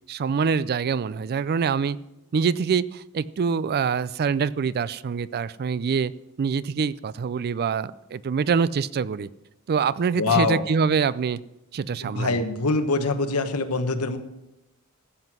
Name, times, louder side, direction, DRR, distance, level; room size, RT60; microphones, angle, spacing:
voice 1, 0.1-2.0 2.3-6.1 6.4-9.3 9.7-11.4 11.7-12.4, right 6 dB, 45° right, 18 dB, 0.4 m, -25 dB
voice 2, 10.2-10.6 12.0-14.2, left 3 dB, 75° left, 8 dB, 1.2 m, -24 dB
14.5 x 7.8 x 6.0 m, 0.94 s
head